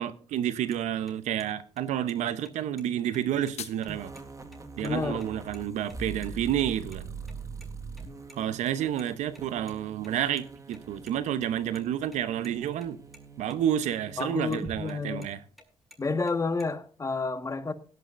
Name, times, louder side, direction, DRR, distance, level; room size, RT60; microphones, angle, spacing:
voice 1, 0.0-4.1 4.8-7.1 8.3-13.0 13.4-15.4, right 10 dB, 80° right, 0.9 m, -30 dB
sound 1, 0.7-0.8 1.1-1.2 1.4-1.5 1.8-2.2 2.5-2.6 2.8-2.9 3.1-4.2 4.5-4.6 4.8-5.0 5.2-5.6 5.9-6.3 6.6-7.7 7.9-10.4 10.7-12.5 12.8-12.9 13.1-13.6 13.8-14.3 14.5-15.6 15.9-16.7, left 1 dB, ahead, 6.7 m, -53 dB
sound 2, 3.1-4.1, left 9 dB, 65° left, 1.0 m, -43 dB
sound 3, 3.9-14.8, right 4 dB, 25° right, 1.7 m, -43 dB
voice 2, 4.8-5.2 14.2-15.3 16.0-17.7, left 4 dB, 25° left, 1.6 m, -30 dB
18.0 x 12.0 x 2.6 m
cardioid pair, 75°, 12 cm